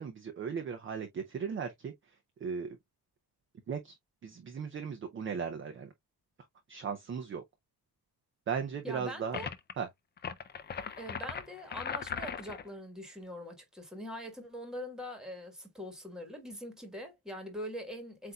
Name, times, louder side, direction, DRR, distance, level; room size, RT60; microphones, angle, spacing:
voice 1, 0.0-1.9 2.4-2.8 3.7-3.9 4.2-5.9 6.7-7.4 8.5-9.4 9.8-9.9, right 6 dB, 30° right, 0.5 m, -37 dB
voice 2, 8.8-9.5 11.0-18.3, equal, ahead, 1.5 m, -43 dB
sound 1, 9.3-9.7 10.2-12.7, left 7 dB, 30° left, 0.4 m, -39 dB
7.8 x 2.7 x 2.3 m
wide cardioid pair, 180°, 39 cm